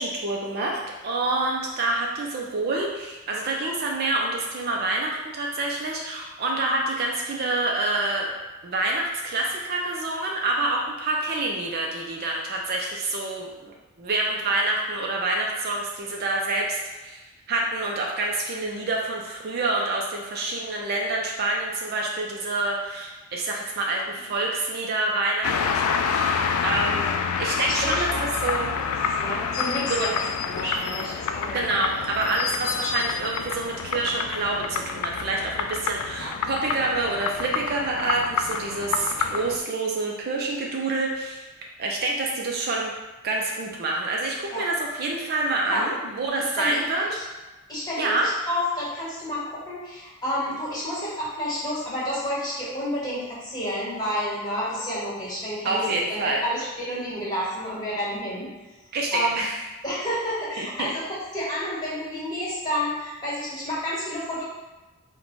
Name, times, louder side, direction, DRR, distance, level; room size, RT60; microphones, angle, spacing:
voice 1, 0.0-8.3 8.6-17.2 17.5-27.1 27.4-28.7 29.9-30.1 31.5-41.5 41.8-42.9 43.2-47.0 48.0-48.3 55.6-56.4 58.9-59.6 60.6-60.9, right 2 dB, 45° right, -1 dB, 0.4 m, -27 dB
sound 1, 25.4-39.6, left 6 dB, 80° left, 0.3 m, -28 dB
voice 2, 27.7-28.2 29.2-31.6 36.2-36.3 44.5-44.6 45.7-45.9 46.6-47.2 47.7-55.8 56.1-58.5 59.1-59.4 59.8-64.4, equal, 20° left, -8 dB, 1.5 m, -30 dB
4.6 x 2.2 x 3.9 m, 1.1 s
head